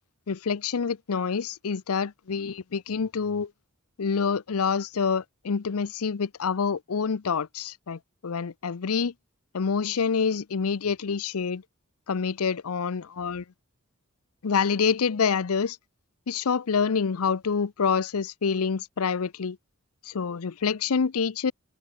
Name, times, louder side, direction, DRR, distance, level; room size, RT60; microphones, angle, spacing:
voice 1, 0.3-3.5 4.0-9.1 9.5-11.6 12.1-13.4 14.4-15.8 16.3-19.6 20.0-21.5, left 5 dB, 85° left, 0.6 m, -27 dB
head